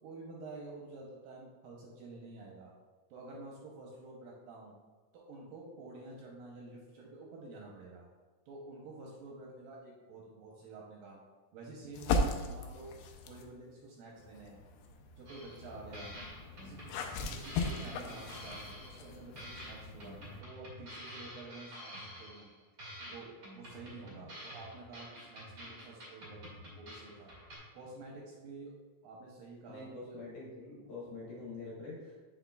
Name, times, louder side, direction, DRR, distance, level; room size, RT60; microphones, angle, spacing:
voice 1, 0.0-2.7 3.1-4.7 5.1-8.1 8.5-11.2 11.5-12.9 13.3-14.6 15.2-16.2 16.5-22.5 23.1-27.3 27.7-28.8 29.0-30.2, right 2 dB, 75° right, -2 dB, 2.2 m, -49 dB
sound 1, 11.9-13.5 14.2-20.4, left 3 dB, 85° left, 2.5 m, -38 dB
sound 2, 15.3-15.7 15.9-19.1 19.4-22.5 22.8-27.6, equal, 55° right, 1.1 m, -49 dB
voice 2, 29.7-32.2, left 3 dB, 60° left, -6 dB, 2.4 m, -45 dB
7.8 x 6.2 x 2.3 m, 1.3 s
omnidirectional pair, 4.7 m